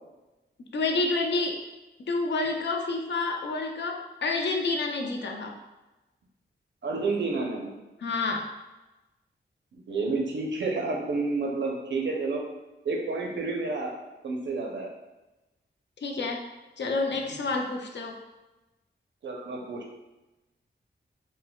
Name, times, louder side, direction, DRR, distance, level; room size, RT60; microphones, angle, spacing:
voice 1, 0.7-1.6 2.1-5.6 8.0-8.5 16.0-16.5 16.8-18.2, left 3 dB, 70° left, 2 dB, 0.4 m, -29 dB
voice 2, 6.8-7.7 9.7-12.4 12.8-13.9 14.2-14.9 17.3-17.4 19.2-19.9, right 3 dB, 70° right, -1 dB, 0.6 m, -30 dB
3.9 x 2.1 x 2.2 m, 1.0 s
wide cardioid pair, 105°, 19 cm